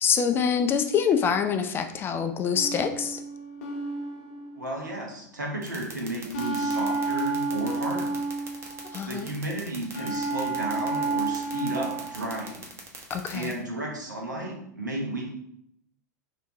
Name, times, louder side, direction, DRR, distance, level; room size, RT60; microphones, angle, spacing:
voice 1, 0.0-3.2 8.9-9.3 13.1-13.5, left 7 dB, 25° left, 6 dB, 0.4 m, -25 dB
sound 1, 2.5-5.0 6.3-9.2 9.9-12.5, right 3 dB, 60° left, 0.7 m, -31 dB
voice 2, 4.5-8.2 9.0-12.6 13.3-15.3, right 1 dB, 80° right, -1 dB, 1.0 m, -33 dB
sound 2, 5.6-13.5, right 5 dB, 30° right, 0.8 m, -41 dB
3.4 x 2.6 x 2.9 m, 0.74 s
figure-of-eight pair, 90°, 10 cm